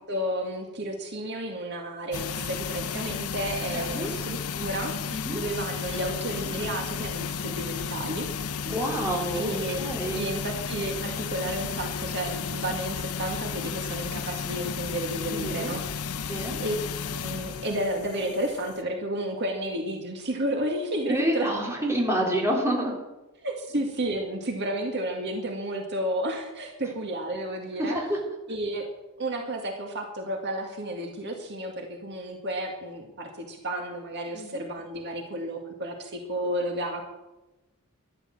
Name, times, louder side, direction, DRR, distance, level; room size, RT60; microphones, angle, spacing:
voice 1, 0.1-8.3 9.3-9.8 10.1-15.8 16.6-16.8 17.1-21.5 23.4-28.0 28.5-28.9 29.2-37.0, right 1 dB, 50° right, 2 dB, 2.1 m, -32 dB
sound 1, 2.1-18.8, left 6 dB, 80° left, 0.8 m, -33 dB
voice 2, 3.7-4.1 5.1-5.4 8.7-9.5 9.8-10.3 15.3-15.7 16.3-16.6 21.1-22.9 27.8-28.2 34.3-34.6, right 1 dB, 10° right, -2 dB, 3.9 m, -28 dB
13.0 x 12.0 x 7.7 m, 1.0 s
head